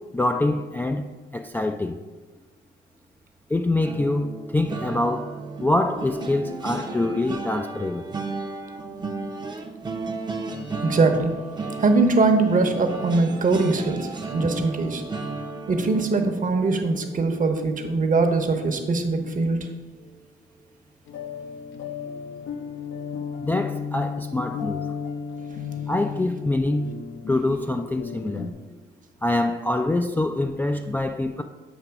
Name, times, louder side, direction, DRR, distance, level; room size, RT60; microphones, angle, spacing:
voice 1, 0.1-2.0 3.5-8.1 23.4-24.8 25.9-26.9 27.3-28.5 29.2-31.4, left 2 dB, 10° left, 0.3 m, -25 dB
sound 1, 3.8-19.0 19.4-19.6 19.9-20.1, right 3 dB, 20° right, 0.7 m, -35 dB
voice 2, 10.8-11.3 11.8-15.0 15.7-19.7, right 3 dB, 40° right, 0.9 m, -22 dB
sound 2, 21.1-28.5, left 6 dB, 75° left, 0.7 m, -34 dB
8.1 x 2.9 x 5.8 m
cardioid pair, 90°, 20 cm